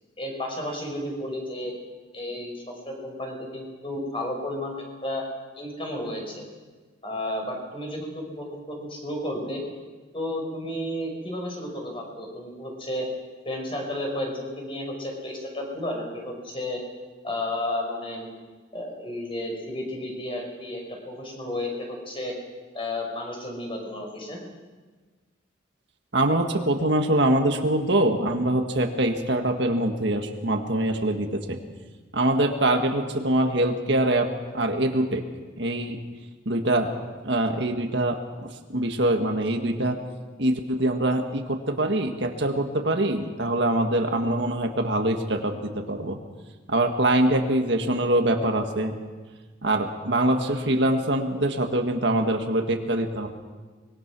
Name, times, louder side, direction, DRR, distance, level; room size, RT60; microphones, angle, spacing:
voice 1, 0.2-1.7 2.1-5.2 5.6-6.5 7.0-9.6 10.1-13.1 13.4-16.8 17.2-18.3 18.7-22.3 22.7-24.4, left 1 dB, 30° left, 1 dB, 5.6 m, -32 dB
voice 2, 26.1-31.6 32.1-34.3 34.5-35.2 35.6-36.0 36.5-36.9 37.2-40.0 40.4-46.2 46.7-49.0 49.6-53.3, right 1 dB, 60° right, 4 dB, 1.9 m, -24 dB
24.5 x 21.5 x 6.2 m, 1.4 s
head